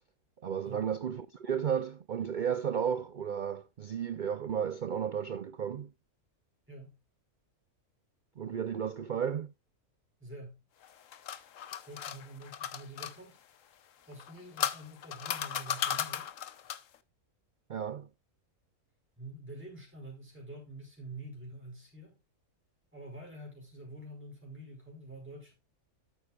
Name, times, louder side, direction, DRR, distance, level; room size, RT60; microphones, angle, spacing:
voice 1, 0.4-5.9 8.4-9.5 17.7-18.1, right 8 dB, 75° right, 0.4 m, -33 dB
voice 2, 10.2-10.6 11.8-13.4 14.1-16.4 19.2-22.2 22.9-25.5, right 1 dB, 5° right, 5.0 m, -47 dB
sound 1, 10.8-13.2 14.1-17.0, left 9 dB, 60° left, 1.1 m, -36 dB
12.5 x 8.9 x 2.4 m
omnidirectional pair, 1.6 m